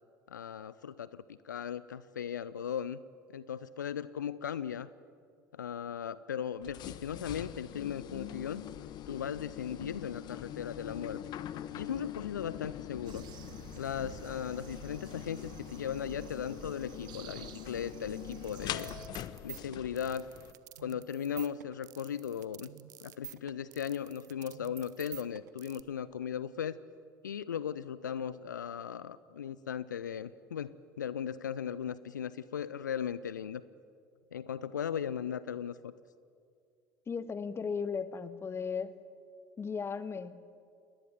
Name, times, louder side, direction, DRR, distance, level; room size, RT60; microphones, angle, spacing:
voice 1, 0.3-3.0 3.3-4.9 5.5-8.6 9.1-11.2 11.8-13.3 13.8-18.9 19.4-20.3 20.8-22.7 23.0-26.8 27.2-33.6 34.3-35.9, left 8 dB, 75° left, 17 dB, 0.5 m, -37 dB
sound 1, 6.6-20.5, left 12 dB, 45° left, 1.1 m, -43 dB
sound 2, 13.0-19.1, right 11 dB, 45° right, 1.3 m, -51 dB
sound 3, 18.3-25.8, right 13 dB, 70° right, 1.0 m, -49 dB
voice 2, 37.1-39.0 39.6-40.5, left 6 dB, 25° left, 14 dB, 1.4 m, -36 dB
29.5 x 20.5 x 7.2 m, 2.3 s
figure-of-eight pair, 65°, 10 cm